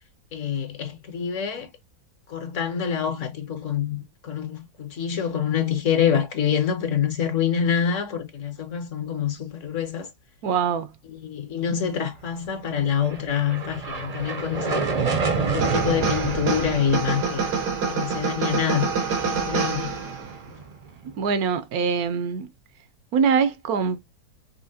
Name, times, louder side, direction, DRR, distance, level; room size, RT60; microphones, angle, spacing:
voice 1, 0.3-1.7 2.3-10.1 11.1-14.9 15.4-17.4 17.8-18.9 19.2-19.9, left 8 dB, 55° left, 1.1 m, -26 dB
voice 2, 10.4-10.9 21.2-22.5 23.1-24.0, right 6 dB, 70° right, 1.0 m, -23 dB
sound 1, 12.8-21.2, right 5 dB, 50° right, 0.4 m, -30 dB
sound 2, 15.6-20.4, right 5 dB, 90° right, 1.7 m, -27 dB
5.6 x 2.7 x 2.7 m
omnidirectional pair, 1.7 m